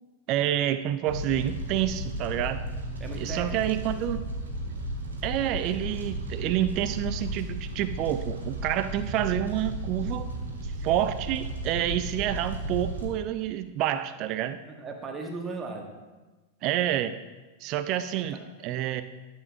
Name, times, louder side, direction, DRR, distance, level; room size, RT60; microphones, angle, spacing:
voice 1, 0.3-2.7 3.2-4.3 5.2-10.3 10.8-14.6 16.6-17.2 17.6-18.4 18.6-19.0, right 12 dB, 40° right, 11 dB, 0.3 m, -28 dB
Fire, 1.1-13.0, right 1 dB, 70° right, 1.5 m, -34 dB
voice 2, 3.0-3.6 14.7-15.9 18.1-18.4, right 3 dB, 20° right, 3 dB, 1.2 m, -37 dB
12.5 x 7.0 x 2.6 m, 1.2 s
figure-of-eight pair, 90°, 0 cm